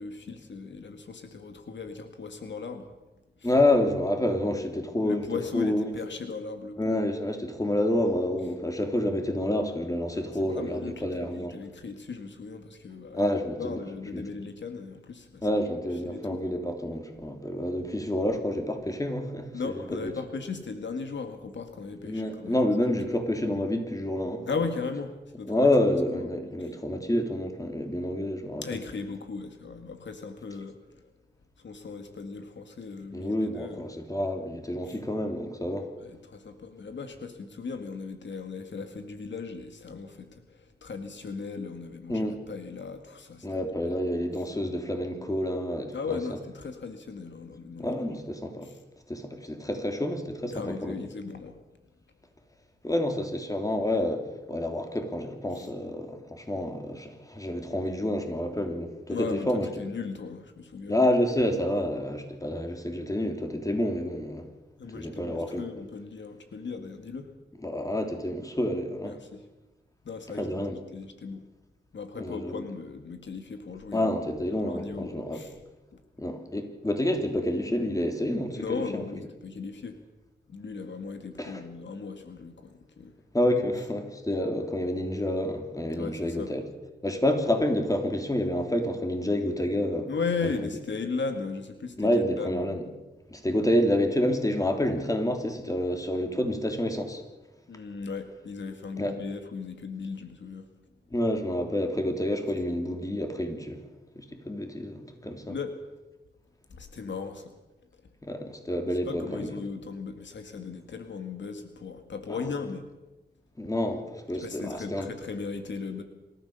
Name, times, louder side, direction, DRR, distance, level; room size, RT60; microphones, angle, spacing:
voice 1, 0.0-2.9 3.4-3.5 5.0-7.0 10.2-15.5 16.1-16.6 19.5-22.6 24.5-25.7 26.1-26.2 26.6-26.7 28.6-31.0 31.6-33.9 34.8-35.0 36.0-44.0 45.9-48.0 48.6-48.8 50.5-51.6 55.5-55.7 59.1-61.0 64.8-67.3 69.0-69.4 70.1-70.6 70.9-71.4 71.9-74.1 74.5-75.5 75.9-76.0 78.6-80.0 80.5-83.1 85.9-86.5 90.1-92.9 97.7-100.7 105.5-105.8 106.7-107.5 109.1-112.9 114.4-116.0, left 4 dB, 80° left, 6 dB, 2.0 m, -37 dB
voice 2, 3.4-5.3 5.5-5.9 6.8-11.6 13.1-13.8 14.1-14.2 15.4-20.1 22.0-24.4 25.5-28.8 33.1-35.9 42.1-42.4 43.4-46.2 47.8-48.7 49.1-51.0 52.8-59.7 60.9-64.4 64.9-65.6 67.6-69.2 70.3-70.8 72.2-72.6 73.9-75.4 76.2-79.0 81.4-81.6 83.3-86.6 87.0-90.1 90.4-90.5 92.0-92.8 93.3-97.2 99.0-99.1 101.1-103.8 104.1-105.5 108.2-109.5 112.3-112.4 113.6-115.1, left 1 dB, 20° left, 4 dB, 3.3 m, -28 dB
27.0 x 14.0 x 6.9 m, 1.1 s
wide cardioid pair, 80°, 19 cm